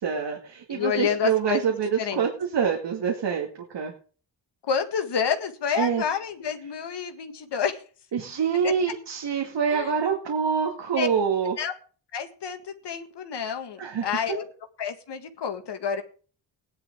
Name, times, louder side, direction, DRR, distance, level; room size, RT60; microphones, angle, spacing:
voice 1, 0.0-3.9 5.8-6.0 8.1-11.6 13.8-14.1, right 6 dB, 65° right, 1 dB, 2.4 m, -26 dB
voice 2, 0.7-2.3 4.7-7.8 9.7-9.9 11.0-11.1 11.6-11.7 12.1-14.4 14.8-16.0, left 7 dB, 65° left, 7 dB, 1.9 m, -29 dB
17.5 x 10.5 x 3.7 m, 0.40 s
wide cardioid pair, 120°, 44 cm